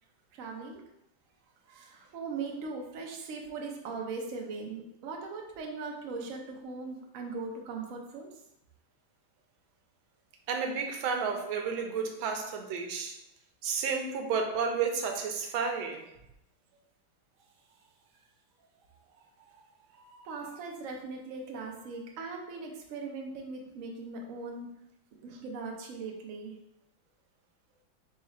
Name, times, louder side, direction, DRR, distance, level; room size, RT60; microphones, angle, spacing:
voice 1, 0.3-0.8 1.7-8.4 17.4-17.9 18.6-24.7 25.2-26.6, right 4 dB, 65° right, 1 dB, 0.8 m, -40 dB
voice 2, 10.5-13.2 13.6-16.0, right 5 dB, 85° right, 3 dB, 1.4 m, -31 dB
4.1 x 2.4 x 4.1 m, 0.84 s
omnidirectional pair, 2.1 m